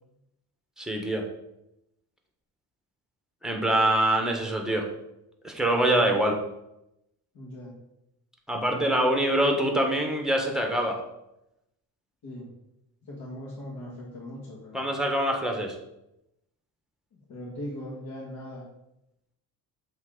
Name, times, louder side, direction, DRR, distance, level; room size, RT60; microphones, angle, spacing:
voice 1, 0.8-1.3 3.4-4.9 5.4-6.4 8.5-11.0 14.7-15.8, right 1 dB, ahead, 2 dB, 1.1 m, -24 dB
voice 2, 7.3-7.8 12.2-12.5 13.0-14.9 17.1-18.6, left 1 dB, 60° left, -7 dB, 1.9 m, -39 dB
7.4 x 3.4 x 3.8 m, 0.86 s
cardioid pair, 90°, 40 cm